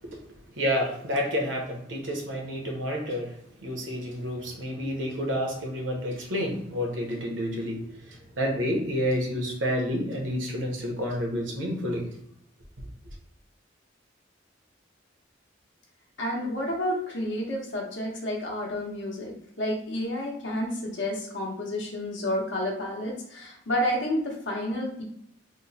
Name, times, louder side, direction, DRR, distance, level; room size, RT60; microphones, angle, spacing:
voice 1, 0.6-3.3 3.6-7.8 8.4-12.1, equal, 80° right, 1 dB, 0.9 m, -29 dB
voice 2, 16.2-25.0, left 1 dB, 70° left, -1 dB, 1.0 m, -30 dB
3.1 x 2.1 x 4.0 m, 0.73 s
head